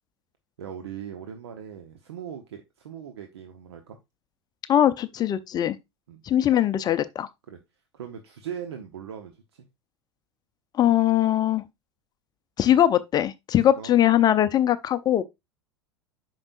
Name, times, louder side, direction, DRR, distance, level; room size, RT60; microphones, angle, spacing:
voice 1, 0.6-4.0 6.1-6.2 7.5-7.6 7.9-9.7 13.7-13.9, right 8 dB, 65° right, 1.1 m, -39 dB
voice 2, 4.7-5.8 6.3-7.3 10.8-11.6 12.6-15.2, left 11 dB, 25° left, 0.6 m, -21 dB
8.7 x 6.0 x 2.5 m
figure-of-eight pair, 85°, 15 cm